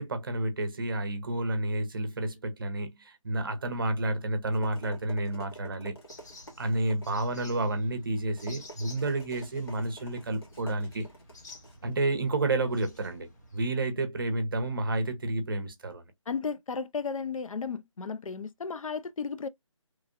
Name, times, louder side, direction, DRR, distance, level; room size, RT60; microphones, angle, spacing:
voice 1, 0.0-6.0 6.6-11.1 11.8-16.0, right 2 dB, 40° right, 0.7 m, -30 dB
sound 1, 4.1-13.0, right 1 dB, 50° left, 1.5 m, -50 dB
sound 2, 6.1-13.7, left 2 dB, 35° left, 0.9 m, -52 dB
voice 2, 16.3-19.5, left 5 dB, 80° left, 0.5 m, -34 dB
3.0 x 2.5 x 2.4 m
figure-of-eight pair, 165°, 17 cm